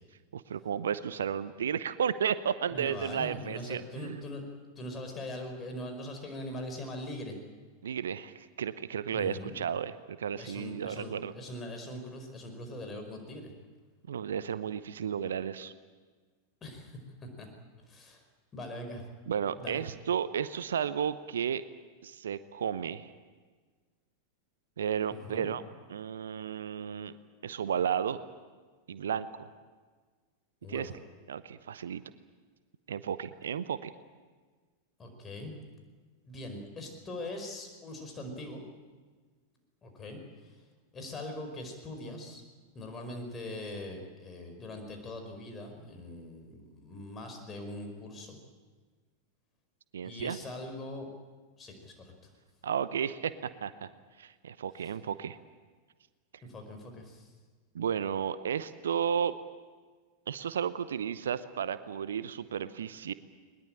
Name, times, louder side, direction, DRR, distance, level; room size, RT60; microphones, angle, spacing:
voice 1, 0.3-4.2 7.8-11.3 14.1-15.7 19.3-21.6 22.0-23.1 24.8-25.6 25.9-27.1 27.4-28.2 28.9-29.5 30.7-30.9 31.3-32.0 32.9-33.9 49.9-50.4 52.6-53.9 54.2-55.4 57.7-59.3 60.3-63.1, right 8 dB, 65° right, 15 dB, 0.8 m, -33 dB
voice 2, 2.7-4.4 4.8-7.4 9.1-9.6 10.4-13.5 16.6-17.5 17.9-18.2 18.5-19.0 19.6-19.8 25.1-25.5 30.6-30.9 35.0-35.5 36.2-38.6 39.8-40.5 40.9-42.4 42.7-48.4 50.0-51.1 51.6-52.3 56.4-57.3, left 1 dB, 20° left, 4 dB, 5.0 m, -42 dB
21.0 x 21.0 x 8.8 m, 1.5 s
figure-of-eight pair, 90°, 0 cm